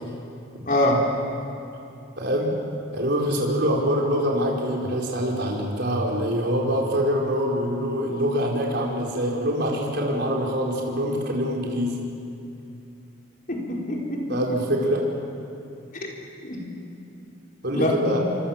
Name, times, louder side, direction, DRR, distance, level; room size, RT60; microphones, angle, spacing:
voice 1, 0.6-1.0 13.5-14.4 15.9-16.1 16.4-16.6 17.7-18.2, left 1 dB, 45° left, -1 dB, 4.6 m, -24 dB
voice 2, 2.2-2.6 2.9-12.0 14.3-15.0 17.6-18.2, equal, 60° right, -2 dB, 4.8 m, -24 dB
27.5 x 26.0 x 7.5 m, 2.6 s
head